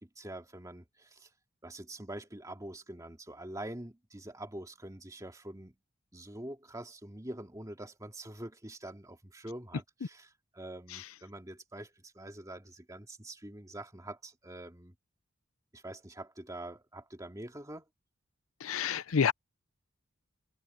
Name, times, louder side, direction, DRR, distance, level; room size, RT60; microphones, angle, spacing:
voice 1, 0.0-1.3 1.6-5.8 6.1-14.9 15.7-17.9, right 1 dB, 15° right, 2.3 m, -45 dB
voice 2, 18.6-19.3, left 6 dB, 80° left, 0.6 m, -29 dB
open air
head